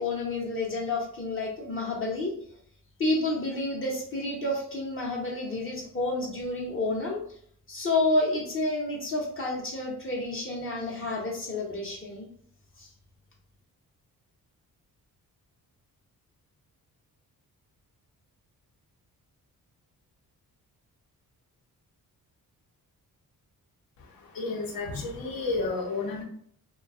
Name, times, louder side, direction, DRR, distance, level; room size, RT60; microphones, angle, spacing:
voice 1, 0.0-2.3 3.0-7.2 7.7-12.3 12.8-12.9, left 2 dB, 35° left, -2 dB, 0.7 m, -30 dB
voice 2, 24.0-26.2, left 3 dB, 70° left, 0 dB, 0.7 m, -32 dB
2.4 x 2.2 x 2.3 m, 0.62 s
cardioid pair, 80°, 36 cm